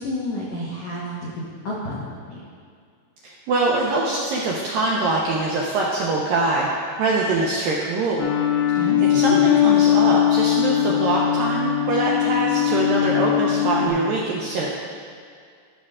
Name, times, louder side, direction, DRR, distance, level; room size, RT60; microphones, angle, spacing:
voice 1, 0.0-2.4 8.8-9.4, left 1 dB, 80° left, -5 dB, 1.6 m, -30 dB
voice 2, 3.2-8.2 9.1-14.8, right 3 dB, 80° right, -4 dB, 2.1 m, -23 dB
sound 1, 8.2-13.9, left 11 dB, 65° left, 2.7 m, -20 dB
13.5 x 6.4 x 3.6 m, 2.1 s
omnidirectional pair, 5.0 m